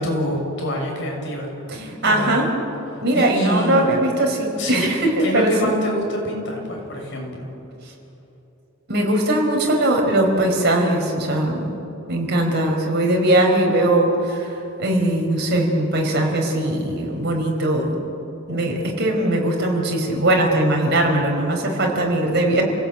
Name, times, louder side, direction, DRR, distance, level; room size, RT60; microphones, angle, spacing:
voice 1, 0.0-2.5 3.1-3.8 4.5-4.9 5.2-7.5, left 1 dB, 60° left, 0 dB, 6.8 m, -26 dB
voice 2, 1.7-2.5 3.0-5.7 8.9-11.6 12.1-14.5 14.8-18.0 18.5-22.6, right 1 dB, 55° right, 1 dB, 5.1 m, -20 dB
29.5 x 17.0 x 9.1 m, 2.9 s
head